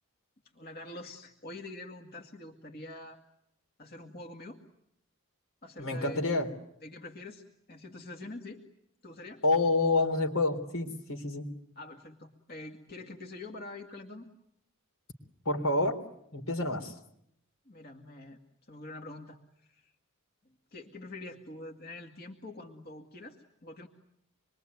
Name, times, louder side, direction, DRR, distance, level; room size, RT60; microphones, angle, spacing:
voice 1, 0.5-3.2 3.8-4.6 5.6-6.2 6.8-8.6 9.0-9.4 11.8-14.3 17.7-18.4 18.7-19.9 20.4-23.9, left 2 dB, 45° left, 3 dB, 2.2 m, -45 dB
voice 2, 5.8-6.5 9.4-11.5 15.5-16.0 16.3-16.9, left 2 dB, 80° left, 5 dB, 3.7 m, -28 dB
26.5 x 22.5 x 9.5 m, 0.74 s
head